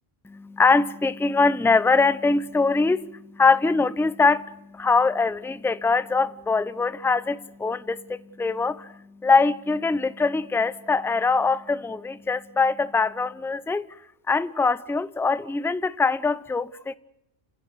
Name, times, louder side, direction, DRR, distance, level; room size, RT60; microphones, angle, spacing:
voice 1, 0.2-13.8 14.3-17.0, left 4 dB, 5° left, 0.6 m, -23 dB
29.5 x 16.0 x 8.0 m
omnidirectional pair, 1.1 m